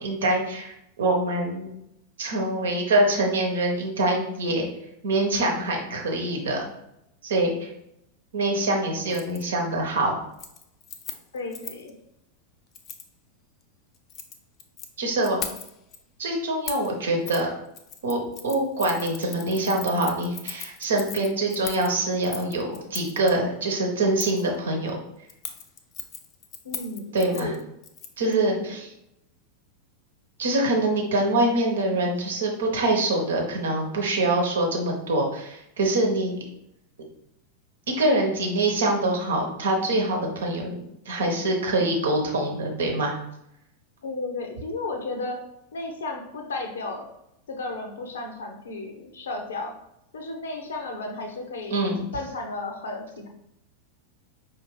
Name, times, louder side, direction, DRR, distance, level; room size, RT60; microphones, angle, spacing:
voice 1, 0.0-1.7 2.2-4.6 5.0-6.7 7.2-7.7 8.3-10.2 15.0-15.4 16.2-17.5 18.0-25.0 27.1-27.5 28.2-28.8 30.4-36.3 37.9-40.8 41.0-43.2 51.7-52.0, right 2 dB, 65° right, 1 dB, 1.0 m, -24 dB
Keys jangling, 9.1-9.4 9.8-10.1 10.3-11.9 12.7-13.1 13.9-14.9 15.2-16.0 16.7-16.9 17.3-17.4 17.7-23.3 24.2-24.5 25.3-28.3 28.6-28.7, left 7 dB, 30° left, 0.4 m, -39 dB
voice 2, 11.3-11.9 26.6-27.6 28.2-28.8 44.0-45.4 45.7-47.1 47.5-49.7 50.1-51.8 52.1-53.3, left 3 dB, 65° left, 3 dB, 0.7 m, -33 dB
4.9 x 2.8 x 3.1 m, 0.81 s
figure-of-eight pair, 90°, 0 cm